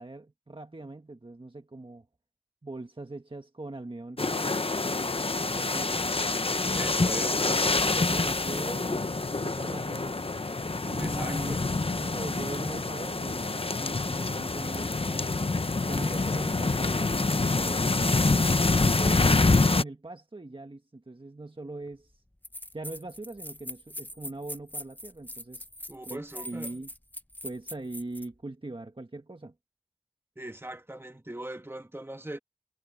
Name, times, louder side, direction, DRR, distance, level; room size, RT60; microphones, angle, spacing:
voice 1, 0.0-2.1 2.6-4.6 5.3-5.9 7.2-10.2 10.8-15.3 15.9-18.5 19.0-22.2 22.7-25.6 26.1-26.9 27.4-29.5, right 2 dB, 55° right, 1.4 m, -41 dB
sound 1, 4.2-19.8, left 3 dB, 65° left, 0.8 m, -26 dB
voice 2, 6.7-8.0 11.0-11.7 25.9-26.7 30.4-32.4, right 1 dB, 25° right, 1.4 m, -40 dB
sound 2, 21.9-22.0 22.4-28.3, left 1 dB, 15° left, 1.0 m, -41 dB
wide cardioid pair, 40°, 10 cm